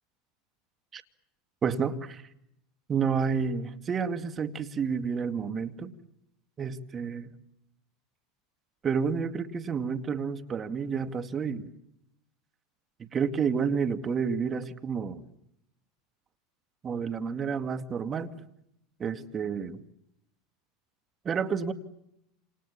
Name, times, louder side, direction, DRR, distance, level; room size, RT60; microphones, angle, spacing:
voice 1, 1.6-2.2 2.9-5.9 6.6-7.3 8.8-11.7 13.0-15.2 16.8-18.3 19.0-19.8 21.2-21.7, right 6 dB, 30° right, 8 dB, 2.2 m, -30 dB
28.5 x 28.0 x 7.1 m, 0.80 s
hypercardioid pair, 95°, 0 cm